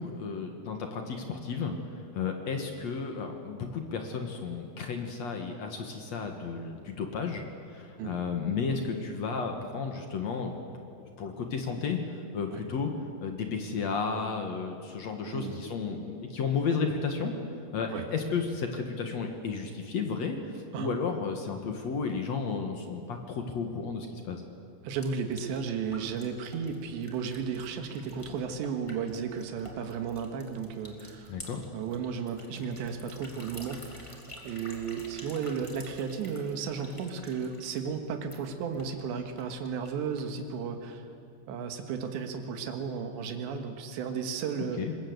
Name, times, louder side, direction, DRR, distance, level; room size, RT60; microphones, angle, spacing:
voice 1, 0.0-10.5 11.2-12.9 13.2-17.3 17.7-24.4 31.3-31.6 44.8-45.0, left 5 dB, 60° left, 4 dB, 1.8 m, -33 dB
voice 2, 15.3-15.6 17.9-18.0 20.7-20.9 24.8-31.4 31.7-34.2 34.4-41.1 41.5-44.8, right 6 dB, 75° right, 5 dB, 3.8 m, -34 dB
sound 1, 24.9-40.5, equal, 15° left, 1.3 m, -50 dB
26.0 x 20.5 x 8.1 m, 2.4 s
omnidirectional pair, 5.2 m